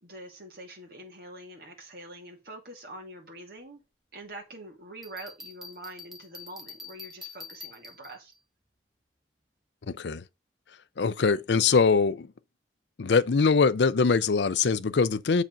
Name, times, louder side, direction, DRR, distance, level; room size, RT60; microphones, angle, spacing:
voice 1, 0.0-3.8 4.1-8.3, right 1 dB, 55° right, 2.4 m, -45 dB
Bell, 5.0-8.4, left 3 dB, ahead, 1.3 m, -45 dB
voice 2, 9.9-10.2 11.0-12.3 13.0-15.4, left 5 dB, 75° left, 0.5 m, -23 dB
7.3 x 5.0 x 5.2 m
head